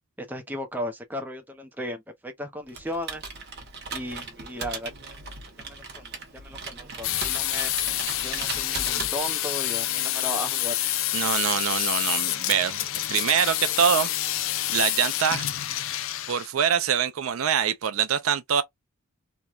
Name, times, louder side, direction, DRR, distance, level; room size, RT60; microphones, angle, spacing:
voice 1, 0.2-3.2 3.9-4.9 5.6-7.7 8.2-10.7, equal, 10° right, 0.5 m, -35 dB
Computer keyboard, 2.7-9.6, right 4 dB, 50° right, 0.9 m, -38 dB
sound 1, 7.0-16.5, left 13 dB, 70° left, 0.4 m, -28 dB
voice 2, 11.1-14.1 14.7-15.5 16.3-18.6, right 8 dB, 80° right, 0.5 m, -24 dB
3.0 x 2.2 x 2.4 m
head